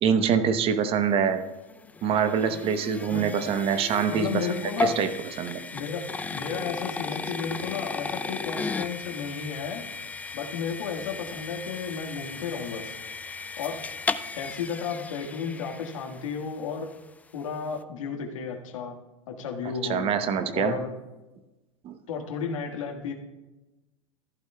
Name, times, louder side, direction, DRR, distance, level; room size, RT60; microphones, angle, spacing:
voice 1, 0.0-1.4 2.0-4.6 4.8-5.6 19.6-20.8 21.8-22.0, right 7 dB, 35° right, 9 dB, 0.9 m, -25 dB
sound 1, 1.3-16.5, left 4 dB, 10° left, 0.3 m, -35 dB
voice 2, 4.1-5.0 5.7-9.9 10.3-12.9 13.6-13.8 14.3-16.9 17.3-19.0 19.3-20.1 20.5-20.9 22.1-23.1, left 6 dB, 80° left, 3 dB, 1.7 m, -33 dB
14.5 x 11.5 x 2.3 m, 1.1 s
hypercardioid pair, 115°, 17 cm